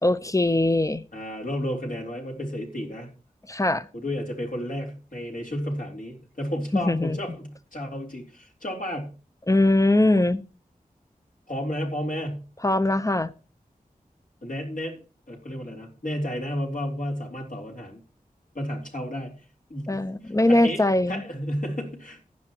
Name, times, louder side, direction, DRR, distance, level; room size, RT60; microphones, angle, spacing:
voice 1, 0.0-1.0 3.5-3.9 6.7-7.2 9.5-10.4 12.6-13.3 19.9-21.2, left 1 dB, 20° left, 13 dB, 0.9 m, -21 dB
voice 2, 1.1-3.1 3.9-9.1 11.5-12.4 14.4-15.0 15.3-18.0 18.5-19.3 19.7-20.8 21.1-22.2, equal, 65° left, 0 dB, 3.8 m, -32 dB
15.0 x 10.0 x 3.0 m, 0.37 s
wide cardioid pair, 55°, 15 cm